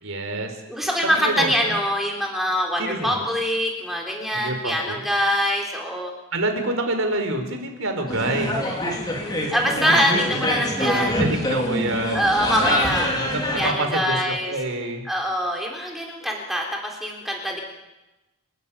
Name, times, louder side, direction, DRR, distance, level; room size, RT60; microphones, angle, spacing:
voice 1, 0.0-0.5 1.1-1.5 2.8-3.2 4.3-5.0 6.3-8.6 10.8-12.3 12.6-12.8 13.1-14.2 14.5-15.0, right 2 dB, 65° right, 5 dB, 4.3 m, -27 dB
voice 2, 0.7-6.1 9.2-11.2 12.1-13.1 13.6-14.5 15.0-17.6, equal, ahead, 0 dB, 3.5 m, -24 dB
sound 1, 8.1-13.7, left 1 dB, 20° left, 4.0 m, -25 dB
29.5 x 12.0 x 8.9 m, 1.0 s
head